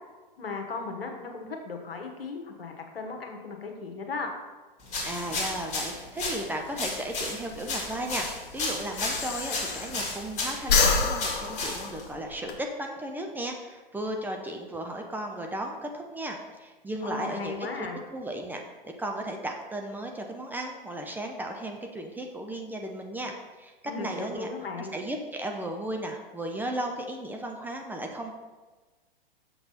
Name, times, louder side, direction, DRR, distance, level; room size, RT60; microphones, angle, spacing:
voice 1, 0.4-4.3 17.0-18.0 23.8-24.9, left 4 dB, 80° left, 3 dB, 1.4 m, -36 dB
sound 1, 4.9-12.1, left 3 dB, 25° left, 2.2 m, -34 dB
voice 2, 5.0-17.9 18.1-23.7 24.0-24.5 24.8-28.3, right 1 dB, 5° right, 2 dB, 0.6 m, -35 dB
Breathing, 7.5-10.3 10.6-12.6, left 4 dB, 60° left, 1.2 m, -28 dB
6.6 x 5.9 x 4.2 m, 1.3 s
hypercardioid pair, 110°, 29 cm